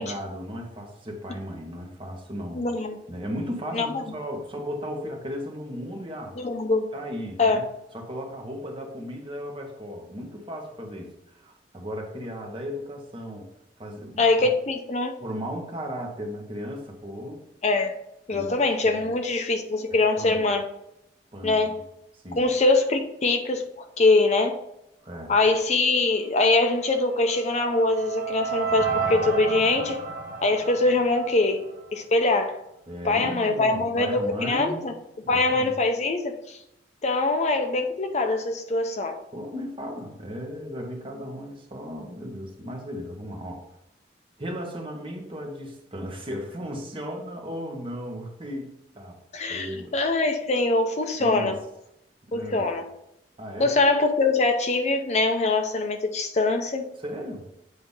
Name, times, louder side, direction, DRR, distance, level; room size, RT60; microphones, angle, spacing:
voice 1, 0.0-2.7 3.1-6.4 6.9-7.7 7.9-13.5 13.8-14.5 15.2-17.4 18.3-19.1 19.9-20.4 21.3-21.8 22.1-22.5 25.0-25.3 32.9-34.9 35.2-35.7 39.3-43.6 44.4-49.2 49.5-49.9 51.2-51.6 52.3-52.7 53.4-53.8 57.0-57.5, equal, 30° right, 1 dB, 1.2 m, -36 dB
voice 2, 2.5-3.0 3.7-4.0 6.4-6.8 7.4-7.6 14.2-15.1 17.6-17.9 18.3-20.7 21.4-21.8 22.4-24.6 25.3-30.0 30.4-31.6 31.9-32.6 33.0-34.9 35.3-36.6 37.0-39.2 49.3-51.6 52.3-52.9 53.6-56.9, left 3 dB, 40° left, 5 dB, 0.6 m, -23 dB
sound 1, 26.8-32.0, right 5 dB, 50° right, 1.2 m, -31 dB
8.1 x 2.8 x 5.4 m, 0.82 s
head